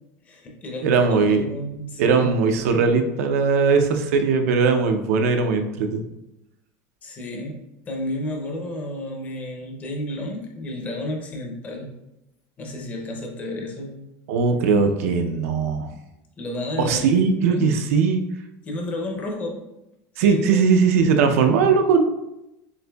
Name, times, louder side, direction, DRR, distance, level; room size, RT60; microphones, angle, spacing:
voice 1, 0.3-2.4 7.0-11.9 12.6-14.0 16.4-17.7 18.6-19.6 20.2-20.7, left 1 dB, 20° left, 1 dB, 0.5 m, -32 dB
voice 2, 0.8-1.4 2.0-6.0 14.3-15.9 16.8-18.2 20.2-22.0, right 5 dB, 90° right, 6 dB, 0.5 m, -19 dB
6.4 x 2.6 x 2.2 m, 0.90 s
supercardioid pair, 175°, 8 cm